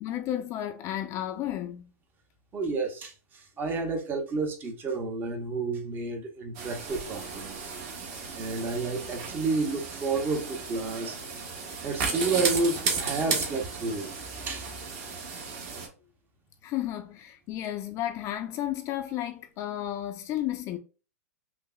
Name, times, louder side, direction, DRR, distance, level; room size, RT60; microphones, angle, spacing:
voice 1, 0.0-1.9 16.6-20.8, left 12 dB, 35° left, 0.4 m, -33 dB
voice 2, 2.5-3.1 3.6-7.7 8.3-11.2 11.8-14.1 14.4-14.7, right 3 dB, 25° right, 0.7 m, -30 dB
sound 1, 6.5-15.9, right 5 dB, 40° right, 1.1 m, -34 dB
5.6 x 2.0 x 2.3 m
hypercardioid pair, 130°, 9 cm